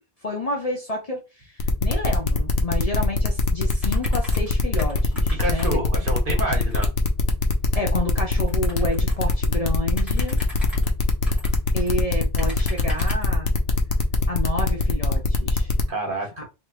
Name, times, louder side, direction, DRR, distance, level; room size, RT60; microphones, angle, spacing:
voice 1, 0.2-5.8 7.7-10.4 11.7-13.5 14.3-15.7 16.4-16.5, left 1 dB, 35° left, 0.9 m, -30 dB
sound 1, 1.6-15.8, left 5 dB, 70° left, 1.0 m, -24 dB
sound 2, 3.8-4.5 4.8-6.0 6.6-6.9 8.4-9.3 9.9-11.9 12.4-13.3, equal, ahead, 1.9 m, -36 dB
voice 2, 5.4-6.9 15.9-16.4, right 2 dB, 50° right, 1.5 m, -28 dB
3.7 x 3.2 x 3.2 m
omnidirectional pair, 1.1 m